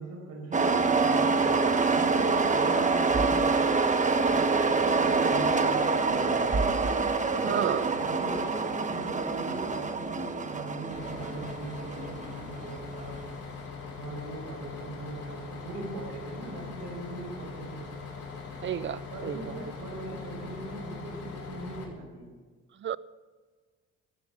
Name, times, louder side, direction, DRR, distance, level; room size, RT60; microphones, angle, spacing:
voice 1, 0.0-3.8 4.3-6.6 7.4-13.2 14.0-17.9 19.1-22.3, right 2 dB, 80° right, 0 dB, 5.4 m, -40 dB
sound 1, 0.5-13.2, right 4 dB, 25° right, 1.2 m, -26 dB
voice 2, 7.5-7.9 18.6-19.6 22.8-23.0, right 9 dB, 40° right, 19 dB, 0.5 m, -31 dB
Bus, 10.9-21.8, left 5 dB, 50° left, 4.3 m, -41 dB
15.0 x 9.5 x 6.0 m, 1.5 s
cardioid pair, 90°, 30 cm